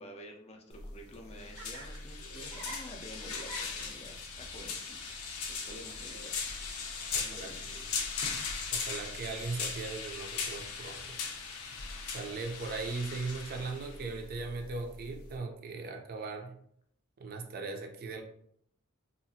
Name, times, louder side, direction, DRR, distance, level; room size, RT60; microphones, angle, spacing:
voice 1, 0.0-5.0 5.4-6.5 7.2-8.2 12.3-12.4, equal, 30° left, 2 dB, 0.4 m, -50 dB
sound 1, 0.7-15.4, left 5 dB, 85° left, 0.5 m, -39 dB
Laughter, 1.0-8.5, right 2 dB, 85° right, 0.6 m, -52 dB
voice 2, 7.1-7.6 8.7-11.2 12.1-16.6 17.2-18.2, right 3 dB, 45° right, 4 dB, 0.4 m, -39 dB
2.7 x 2.4 x 2.6 m, 0.67 s
head